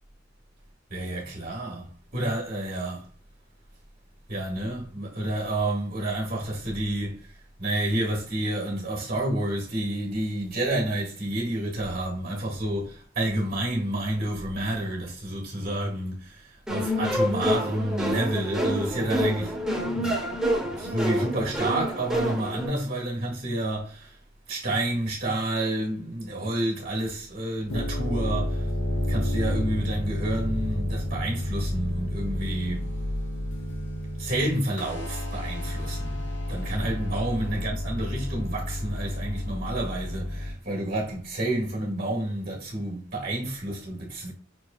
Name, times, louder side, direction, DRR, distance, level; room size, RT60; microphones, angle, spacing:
voice 1, 0.9-3.0 4.3-7.2 7.6-20.4 20.8-24.2 24.5-28.7 29.1-32.9 34.2-36.2 36.5-44.3, right 1 dB, 50° right, 1.7 m, -29 dB
sound 1, 16.7-22.7, equal, 5° right, 1.1 m, -27 dB
sound 2, 27.6-40.5, left 1 dB, 70° left, 1.1 m, -30 dB
6.0 x 3.2 x 2.7 m
head